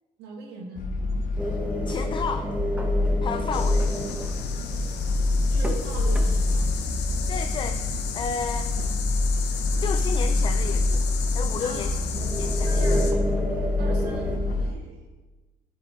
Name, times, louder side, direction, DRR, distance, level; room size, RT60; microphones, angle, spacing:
voice 1, 0.2-0.9 5.5-6.7 11.6-12.0 12.6-13.2 13.8-14.3 14.6-15.0, right 4 dB, 80° right, 0 dB, 1.7 m, -39 dB
sound 1, 0.8-14.7, left 2 dB, 55° left, 0.8 m, -26 dB
sound 2, 1.4-14.4, equal, 5° right, 0.8 m, -34 dB
voice 2, 1.9-2.5 3.2-3.9 7.3-7.8 8.2-8.7 9.8-11.0 11.3-12.0 12.3-13.2, left 6 dB, 30° left, 8 dB, 0.3 m, -32 dB
sound 3, 3.5-13.1, left 7 dB, 85° left, 0.8 m, -35 dB
12.5 x 4.5 x 3.0 m, 1.2 s
cardioid pair, 110°, 17 cm